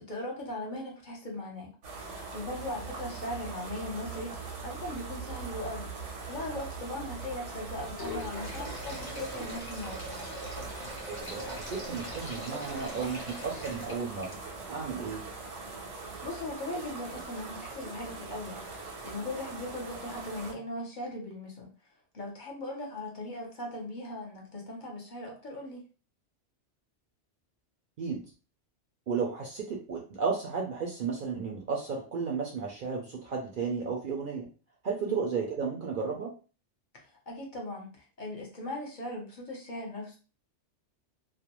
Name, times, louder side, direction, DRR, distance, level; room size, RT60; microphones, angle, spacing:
voice 1, 0.0-1.7 2.0-2.1 2.3-5.9 6.3-10.2 16.2-18.6 19.0-21.7 22.1-25.8 35.0-35.2 36.9-40.2, left 1 dB, 45° left, -1 dB, 0.9 m, -39 dB
sound 1, 1.8-20.5, right 4 dB, 85° right, 1.1 m, -41 dB
Sink (filling or washing), 7.8-14.7, left 1 dB, 25° left, 0.5 m, -42 dB
voice 2, 11.1-14.3 14.7-15.2 28.0-28.2 29.1-34.5 34.8-36.3, right 5 dB, 60° right, -1 dB, 0.6 m, -33 dB
2.4 x 2.2 x 2.9 m, 0.36 s
omnidirectional pair, 1.2 m